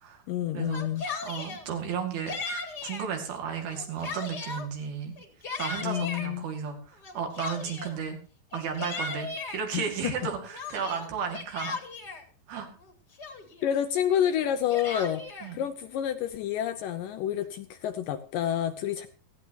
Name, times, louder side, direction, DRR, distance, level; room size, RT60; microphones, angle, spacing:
voice 1, 0.3-1.1 5.8-6.5 9.7-10.1 13.6-15.2 15.5-19.1, left 10 dB, 75° left, 9 dB, 2.1 m, -29 dB
Yell, 0.6-1.6 2.3-3.1 3.6-4.7 5.2-6.3 7.0-8.0 8.5-9.6 10.1-12.2 12.8-12.9 13.2-13.7 14.4-15.5, left 3 dB, 35° left, 1.8 m, -37 dB
voice 2, 1.2-2.4 2.8-5.1 5.6-8.2 8.5-9.3 9.5-11.8 12.5-12.7 15.4-15.6, right 6 dB, 75° right, 3 dB, 4.1 m, -33 dB
17.5 x 15.0 x 2.9 m, 0.39 s
omnidirectional pair, 4.4 m